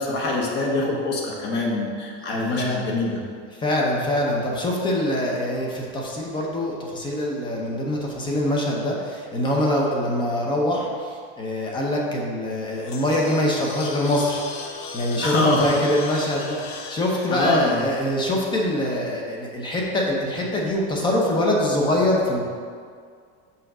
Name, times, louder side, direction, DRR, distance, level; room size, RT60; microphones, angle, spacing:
voice 1, 0.0-3.2 15.2-15.6 17.3-17.8, left 2 dB, 35° left, -2 dB, 1.0 m, -24 dB
voice 2, 2.3-2.8 3.6-10.9 11.4-14.4 14.9-15.3 15.6-22.4, left 1 dB, 15° left, -2 dB, 0.7 m, -24 dB
sound 1, 12.5-18.8, left 5 dB, 90° left, 0.8 m, -38 dB
5.7 x 3.8 x 6.1 m, 2.1 s
cardioid pair, 170°, 30 cm